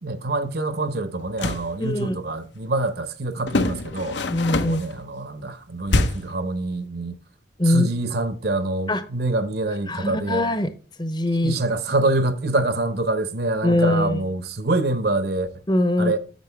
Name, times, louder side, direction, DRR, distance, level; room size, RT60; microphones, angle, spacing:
voice 1, 0.0-4.2 4.6-7.1 7.7-10.4 11.4-15.5 16.0-16.2, right 2 dB, 55° right, 0.8 m, -25 dB
sound 1, 1.2-1.7 3.5-4.9 5.9-6.4, left 2 dB, 70° left, 0.8 m, -24 dB
voice 2, 1.8-2.2 4.2-4.8 7.6-7.9 8.9-9.1 9.9-10.7 11.0-11.6 13.6-14.2 15.7-16.2, left 1 dB, 25° left, 0.8 m, -22 dB
8.3 x 6.6 x 3.3 m
head